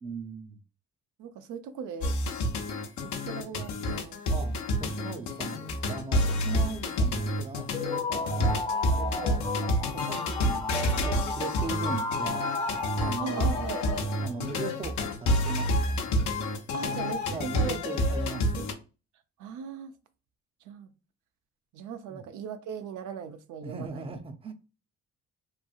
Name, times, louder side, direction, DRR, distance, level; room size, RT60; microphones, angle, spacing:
voice 1, 0.0-0.6 4.3-8.6 8.9-9.4 9.9-12.5 13.0-13.7 14.2-16.1 16.8-18.7 22.1-22.2 23.6-24.5, right 4 dB, 20° right, 0.4 m, -39 dB
voice 2, 1.2-2.2 3.0-4.2 13.2-13.9 16.7-17.8 18.6-18.7 19.4-19.9 20.6-20.9 21.7-24.1, right 6 dB, 80° right, 0.5 m, -38 dB
sound 1, 2.0-18.7, equal, 75° left, 0.7 m, -29 dB
sound 2, 7.7-14.5, left 3 dB, 20° left, 0.6 m, -34 dB
3.1 x 2.6 x 2.3 m
cardioid pair, 90°, 30 cm